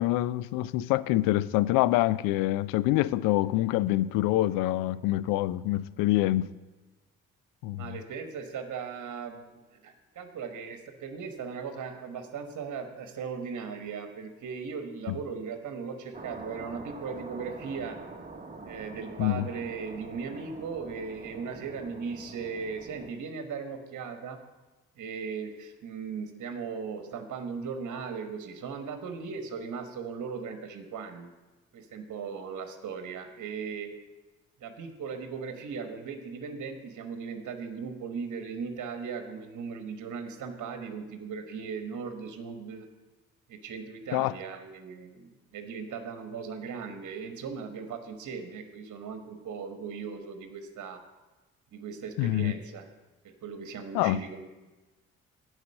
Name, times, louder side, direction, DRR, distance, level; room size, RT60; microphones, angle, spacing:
voice 1, 0.0-6.5 7.6-8.0 15.1-15.2 19.2-19.5 44.1-44.3 52.2-52.5 53.9-54.2, left 16 dB, 70° left, 18 dB, 0.5 m, -26 dB
voice 2, 7.8-18.0 18.6-24.4 25.0-31.3 31.7-33.9 34.6-42.9 43.5-51.0 51.7-52.8 53.2-54.4, right 5 dB, 55° right, 7 dB, 1.3 m, -38 dB
sound 1, 16.1-23.1, right 3 dB, 25° right, 1.5 m, -45 dB
9.5 x 5.1 x 6.4 m, 1.2 s
hypercardioid pair, 45°, 35 cm